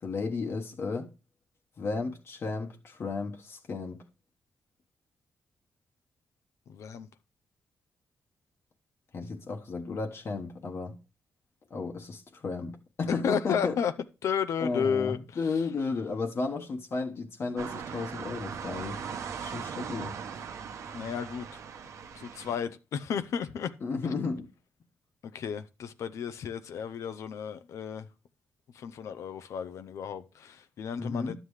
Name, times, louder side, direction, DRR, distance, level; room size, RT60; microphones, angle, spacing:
voice 1, 0.0-1.1 1.8-4.0 9.1-11.0 11.7-13.8 14.6-19.0 19.4-20.1 23.8-24.5 31.0-31.4, left 4 dB, 55° left, 1.3 m, -33 dB
voice 2, 6.7-7.1 13.2-13.9 14.2-15.7 20.9-21.5 22.1-23.7 24.0-24.1 25.2-28.1 28.7-31.4, left 7 dB, 75° left, 0.6 m, -33 dB
sound 1, 17.6-22.6, right 6 dB, 75° right, 0.9 m, -39 dB
11.0 x 7.6 x 3.2 m
cardioid pair, 85°, 5 cm